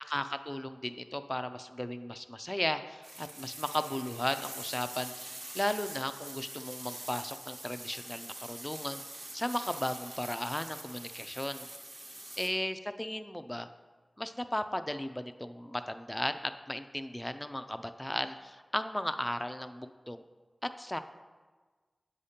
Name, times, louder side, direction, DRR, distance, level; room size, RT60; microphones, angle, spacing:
voice 1, 0.1-11.7 12.4-13.7 14.2-20.2 20.6-21.0, left 1 dB, 15° left, 10 dB, 0.4 m, -36 dB
sound 1, 3.0-12.5, right 1 dB, 45° right, 0.9 m, -45 dB
8.0 x 2.8 x 5.0 m, 1.4 s
cardioid pair, 40°, 0 cm